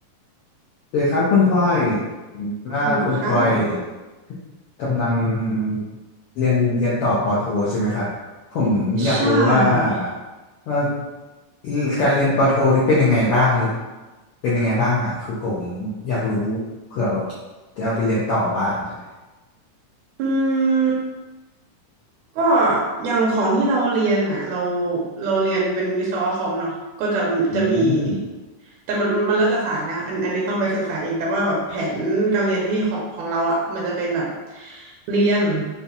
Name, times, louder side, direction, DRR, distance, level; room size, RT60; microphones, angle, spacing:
voice 1, 0.9-2.0 2.4-3.8 4.8-5.8 6.4-8.1 8.5-10.1 10.7-10.9 11.6-13.7 14.4-16.6 16.9-17.2 17.8-19.0 27.5-28.2, left 2 dB, 80° left, -9 dB, 1.2 m, -20 dB
voice 2, 2.8-3.6 9.0-9.9 20.2-21.0 22.4-26.7 27.0-28.2 28.9-35.7, right 2 dB, 85° right, -4 dB, 2.0 m, -22 dB
5.5 x 2.3 x 2.6 m, 1.2 s
omnidirectional pair, 3.5 m